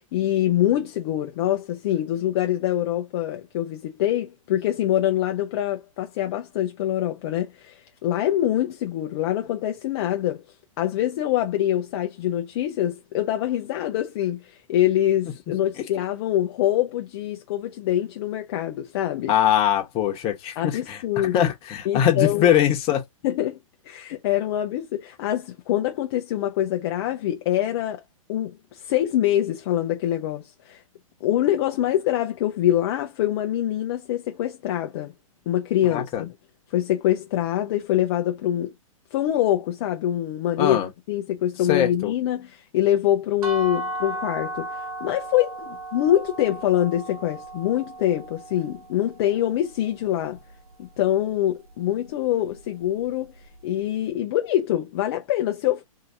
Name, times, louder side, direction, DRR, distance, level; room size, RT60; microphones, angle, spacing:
voice 1, 0.0-10.4 10.8-19.3 20.6-21.5 21.8-22.5 23.2-23.6 23.8-28.0 28.3-30.8 31.2-35.1 35.5-36.3 36.7-38.7 39.1-40.8 41.1-50.4 50.8-55.8, left 12 dB, 50° left, 0.6 m, -24 dB
voice 2, 19.3-21.0 21.3-23.0 35.9-36.2 40.6-40.9 41.7-42.1, left 10 dB, 30° left, 1.1 m, -22 dB
sound 1, 43.4-49.2, right 1 dB, 85° right, 1.0 m, -35 dB
2.8 x 2.7 x 3.4 m
hypercardioid pair, 130°, 18 cm